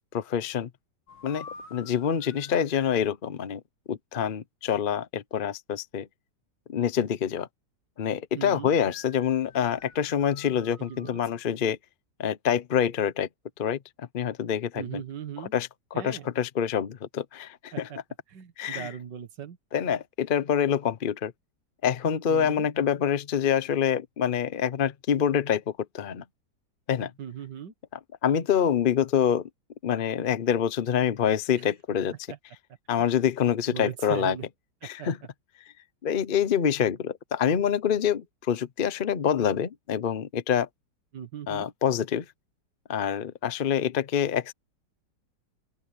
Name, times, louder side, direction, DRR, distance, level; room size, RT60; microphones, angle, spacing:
voice 1, 0.1-0.7 1.2-1.5 1.7-3.6 3.9-6.1 6.7-7.5 8.0-11.8 12.2-13.3 13.6-15.0 15.5-17.9 18.6-18.9 19.7-21.3 21.8-26.2 26.9-27.1 28.2-29.5 29.8-32.1 32.9-34.4 34.8-35.2 36.0-40.7 41.5-42.3 42.9-44.5, left 8 dB, 45° left, 0.6 m, -26 dB
sound 1, 1.1-3.1 8.7-11.4, left 4 dB, 80° left, 3.3 m, -49 dB
voice 2, 8.4-8.7 10.8-11.2 14.7-15.5 15.9-16.3 17.7-18.0 18.3-19.6 22.3-22.7 27.2-27.7 31.6-31.7 32.3-32.4 33.6-34.5 34.8-35.3 41.1-41.7, right 9 dB, 75° right, 2.2 m, -38 dB
open air
omnidirectional pair, 1.9 m